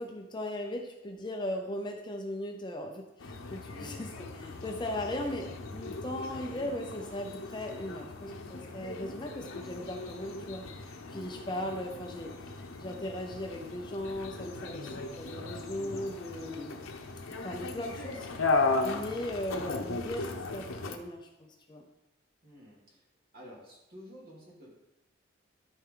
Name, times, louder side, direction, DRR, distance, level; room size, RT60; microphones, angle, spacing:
voice 1, 0.0-4.1 4.4-16.8 17.4-18.3 18.6-21.8, left 1 dB, 20° left, 2 dB, 0.6 m, -38 dB
sound 1, 3.2-21.0, left 3 dB, 85° left, 0.8 m, -37 dB
voice 2, 3.7-4.2 11.1-11.5 15.7-16.3 17.6-18.2 18.8-19.3 22.4-23.0 23.3-24.8, left 1 dB, 45° right, -5 dB, 2.5 m, -51 dB
13.0 x 4.5 x 3.9 m, 0.96 s
head